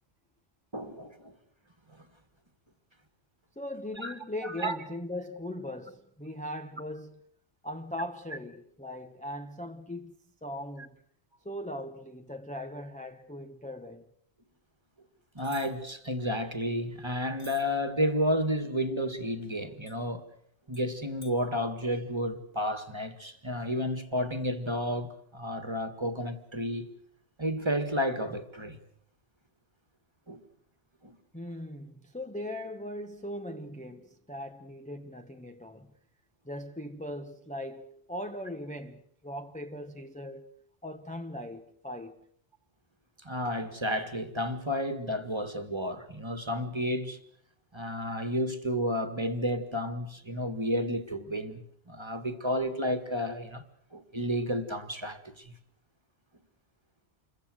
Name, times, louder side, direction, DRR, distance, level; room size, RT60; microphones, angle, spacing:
voice 1, 0.7-1.3 1.9-2.0 4.0-4.1 4.4-4.8 15.4-20.3 20.7-26.9 27.4-28.8 30.3-30.4 31.0-31.2 43.2-47.2 47.7-53.6 53.9-55.5, equal, 25° right, 1.9 m, -31 dB
voice 2, 3.6-7.2 7.6-10.2 10.4-10.9 11.4-14.0 31.3-35.9 36.4-40.5 40.8-42.2, left 1 dB, 5° left, 1.0 m, -39 dB
sound 1, 15.4-15.7 17.4-17.6 19.9-20.0 20.7-20.9 21.2-21.3, right 1 dB, 25° left, 3.1 m, -50 dB
28.0 x 22.5 x 6.4 m
omnidirectional pair, 1.2 m